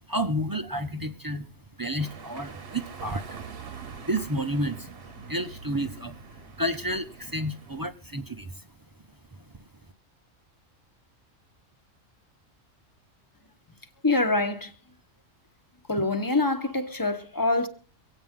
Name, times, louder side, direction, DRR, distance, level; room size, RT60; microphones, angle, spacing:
voice 1, 0.1-1.5 1.8-3.3 4.0-5.0 5.3-8.6, equal, 25° right, 0.4 m, -31 dB
sound 1, 2.0-7.8, right 5 dB, 50° right, 1.1 m, -44 dB
voice 2, 14.0-14.7 15.9-17.7, left 2 dB, 15° left, 1.1 m, -25 dB
24.5 x 8.9 x 3.7 m
omnidirectional pair, 1.3 m